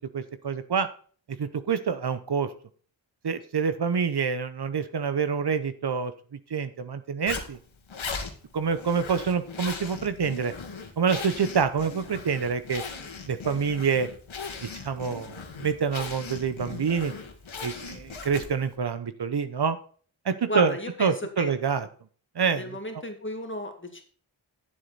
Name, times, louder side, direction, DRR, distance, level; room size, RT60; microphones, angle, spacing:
voice 1, 0.1-0.9 1.4-2.5 3.2-6.1 6.5-7.6 8.5-10.5 11.0-12.8 13.3-14.1 14.6-17.1 17.6-19.8 20.2-20.7 21.0-21.9 22.4-22.8, right 6 dB, 60° right, 11 dB, 0.9 m, -27 dB
Zipper (clothing), 7.3-18.7, left 5 dB, 90° left, 1.8 m, -39 dB
voice 2, 20.5-21.5 22.5-24.0, left 1 dB, 25° left, 5 dB, 2.0 m, -34 dB
9.9 x 7.7 x 4.1 m, 0.43 s
wide cardioid pair, 85°, 46 cm